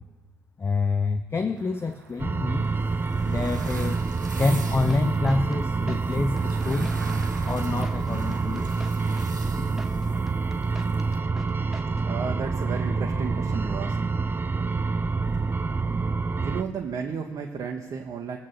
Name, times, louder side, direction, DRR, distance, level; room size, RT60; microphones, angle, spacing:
voice 1, 0.6-2.6 3.3-4.0 4.4-7.2 7.5-8.7, left 3 dB, 25° left, 8 dB, 0.7 m, -27 dB
sound 1, 1.6-11.2, right 4 dB, 85° right, 0.6 m, -45 dB
sound 2, 2.2-16.6, right 4 dB, 20° right, 0.5 m, -27 dB
sound 3, 4.7-12.2, right 1 dB, ahead, 1.1 m, -45 dB
voice 2, 12.0-14.0 16.3-18.4, right 6 dB, 45° right, 1 dB, 1.0 m, -33 dB
20.0 x 7.4 x 2.8 m, 1.3 s
figure-of-eight pair, 45°, 10 cm